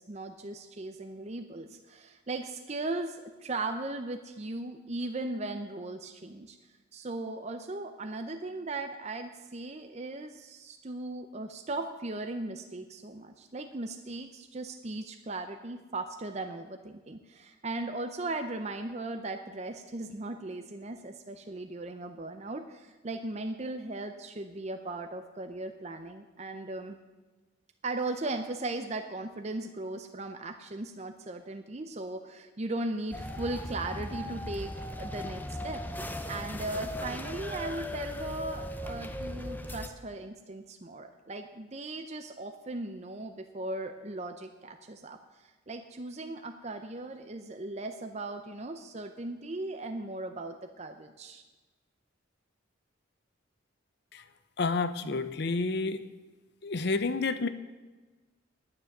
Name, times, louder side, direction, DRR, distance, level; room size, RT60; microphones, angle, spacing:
voice 1, 0.0-6.6 6.9-27.0 27.8-51.4, right 2 dB, 35° right, 6 dB, 0.6 m, -38 dB
sound 1, 33.1-39.9, left 1 dB, 10° left, 0.5 m, -38 dB
voice 2, 54.6-56.1 56.6-57.5, left 3 dB, 55° left, 12 dB, 0.7 m, -29 dB
10.0 x 9.6 x 6.6 m, 1.2 s
head